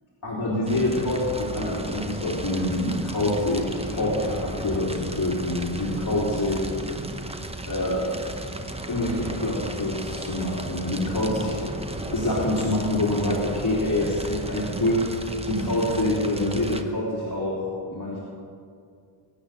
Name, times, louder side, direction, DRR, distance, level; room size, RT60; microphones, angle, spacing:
voice 1, 0.2-6.7 7.7-8.1 8.9-11.7 12.0-15.0 15.4-18.2, left 1 dB, 40° left, -7 dB, 3.4 m, -26 dB
Fire, 0.7-16.8, right 1 dB, 10° right, 0.8 m, -35 dB
23.0 x 8.9 x 6.6 m, 2.3 s
wide cardioid pair, 180°, 50 cm